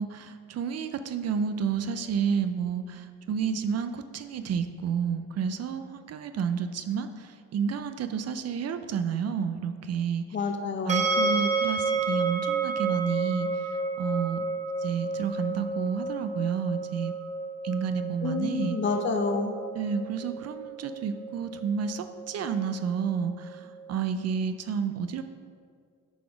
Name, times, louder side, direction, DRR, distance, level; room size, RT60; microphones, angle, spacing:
voice 1, 0.0-10.2 10.9-13.5 14.0-14.4 14.8-17.1 17.6-18.8 19.7-25.2, right 6 dB, 55° right, 9 dB, 0.4 m, -30 dB
voice 2, 10.3-11.0 18.2-19.5, left 4 dB, 35° left, 5 dB, 0.6 m, -28 dB
sound 1, 10.9-23.9, right 3 dB, 20° right, 0.7 m, -31 dB
8.5 x 4.1 x 5.7 m, 2.1 s
wide cardioid pair, 175°, 32 cm